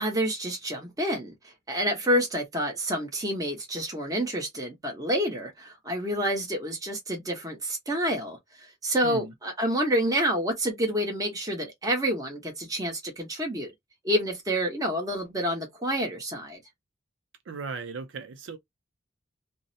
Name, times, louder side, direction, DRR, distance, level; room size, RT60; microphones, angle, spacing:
voice 1, 0.0-13.7 14.0-16.6, equal, 20° right, 0.9 m, -28 dB
voice 2, 9.0-9.3 17.5-18.6, right 4 dB, 70° right, 0.4 m, -37 dB
2.6 x 2.0 x 2.6 m
head